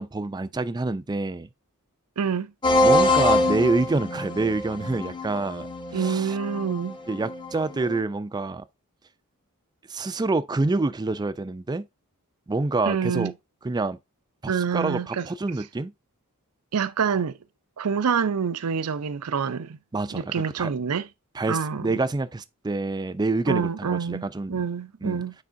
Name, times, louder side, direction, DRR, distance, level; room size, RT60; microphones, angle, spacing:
voice 1, 0.0-1.5 2.8-6.4 7.1-8.6 9.9-11.9 12.5-13.3 13.6-14.0 14.4-15.9 19.9-20.7 21.3-24.7 25.0-25.2, right 3 dB, 20° right, 0.4 m, -27 dB
voice 2, 2.2-2.5 5.9-7.0 12.9-13.3 14.5-15.3 16.7-17.4 17.8-19.8 20.1-21.1 21.5-21.9 23.5-25.3, right 6 dB, 80° right, 0.5 m, -27 dB
sound 1, 2.6-8.0, left 1 dB, 20° left, 0.7 m, -25 dB
8.4 x 4.7 x 2.6 m
head